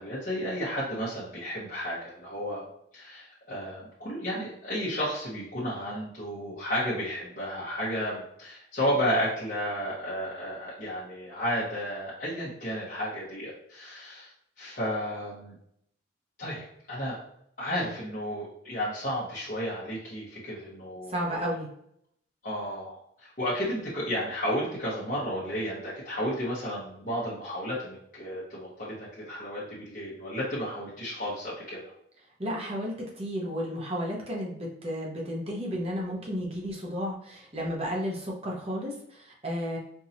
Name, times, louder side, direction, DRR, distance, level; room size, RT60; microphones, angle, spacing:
voice 1, 0.0-2.6 2.9-14.3 14.6-15.5 16.4-17.2 17.6-21.4 22.4-31.8, equal, 45° left, -8 dB, 1.1 m, -32 dB
voice 2, 21.1-21.7 32.4-39.8, equal, 30° right, -2 dB, 0.9 m, -33 dB
4.6 x 2.7 x 2.7 m, 0.71 s
head